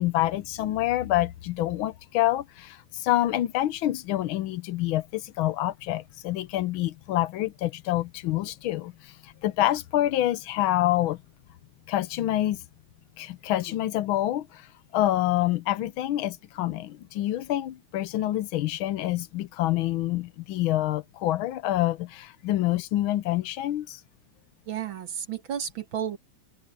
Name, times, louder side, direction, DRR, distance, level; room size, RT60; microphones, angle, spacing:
voice 1, 0.0-11.2 11.9-12.6 13.2-14.7 14.9-24.0, left 14 dB, 85° left, 1.6 m, -27 dB
voice 2, 24.7-26.2, right 9 dB, 75° right, 2.5 m, -32 dB
omnidirectional pair, 2.2 m